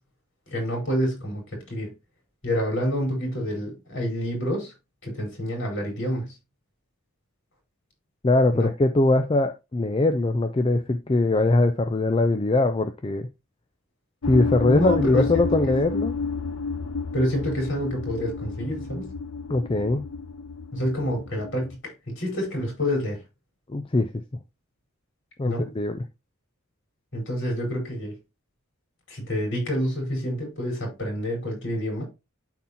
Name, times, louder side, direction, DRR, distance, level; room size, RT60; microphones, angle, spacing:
voice 1, 0.5-1.9 2.4-4.7 5.0-6.3 8.5-8.7 14.6-15.5 17.1-19.1 20.7-23.2 25.4-25.7 27.1-28.1 29.1-32.0, equal, 55° left, 4.6 m, -28 dB
voice 2, 8.2-13.3 14.3-16.1 19.5-20.0 23.7-24.1 25.4-26.1, left 2 dB, 25° left, 0.4 m, -21 dB
sound 1, 14.2-21.8, left 4 dB, 90° left, 0.9 m, -31 dB
12.0 x 4.2 x 2.8 m
head